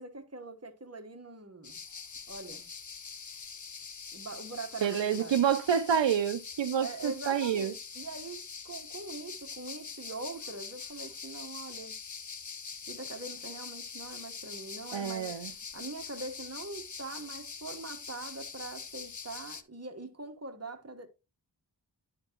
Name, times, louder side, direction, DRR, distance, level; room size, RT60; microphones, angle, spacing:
voice 1, 0.0-1.8 2.3-2.7 4.1-5.4 6.8-12.0 12.9-15.3 15.7-21.1, right 3 dB, 35° right, 1.3 m, -43 dB
sound 1, 1.6-19.6, left 5 dB, 45° left, 0.6 m, -44 dB
voice 2, 4.8-7.7 14.9-15.5, right 8 dB, 85° right, 0.5 m, -28 dB
10.5 x 4.4 x 3.0 m
wide cardioid pair, 40°, 43 cm